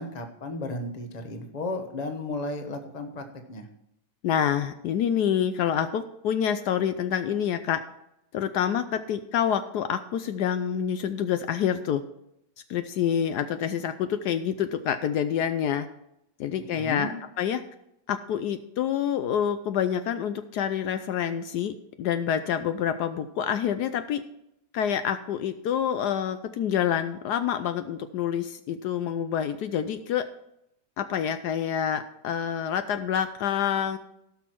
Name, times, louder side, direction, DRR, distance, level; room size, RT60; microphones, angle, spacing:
voice 1, 0.0-3.7 16.5-17.1, left 2 dB, 25° left, 5 dB, 1.1 m, -34 dB
voice 2, 4.2-7.8 8.3-12.0 12.7-15.9 16.4-17.6 18.1-24.2 24.7-30.3 31.0-34.0, left 9 dB, 75° left, 9 dB, 1.1 m, -27 dB
16.5 x 6.2 x 4.5 m, 0.80 s
omnidirectional pair, 1.9 m